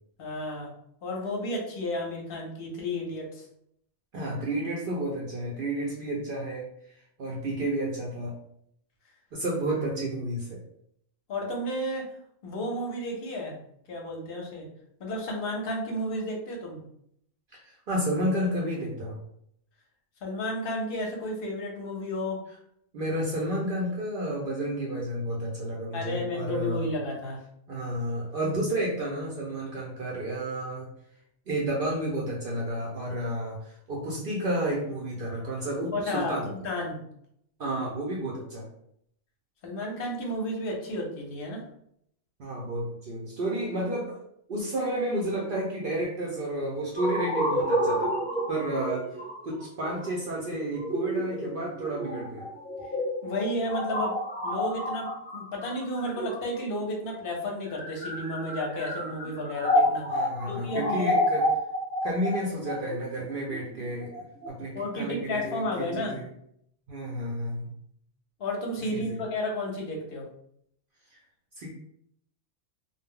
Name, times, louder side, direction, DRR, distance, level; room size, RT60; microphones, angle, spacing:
voice 1, 0.2-0.7 1.0-3.5 11.3-12.1 12.4-13.6 13.9-14.7 15.0-16.8 20.2-22.4 25.9-27.4 35.9-36.3 36.6-37.0 39.6-41.6 53.2-54.2 54.4-55.1 55.3-61.2 64.7-66.2 68.4-70.2, left 1 dB, 55° left, 0 dB, 0.7 m, -32 dB
voice 2, 4.1-6.7 7.2-8.3 9.3-10.6 17.5-19.2 22.9-26.9 27.7-30.9 31.5-36.5 37.6-38.7 42.4-44.2 44.5-48.1 48.5-49.1 49.4-52.5 60.1-61.4 62.0-66.2 66.9-67.7 68.9-69.2 71.1-71.2 71.6-71.7, right 1 dB, 60° right, -3 dB, 0.6 m, -31 dB
sound 1, 47.0-56.8 57.5-64.5, equal, 10° left, 0.7 m, -30 dB
2.1 x 2.0 x 3.6 m, 0.72 s
omnidirectional pair, 1.3 m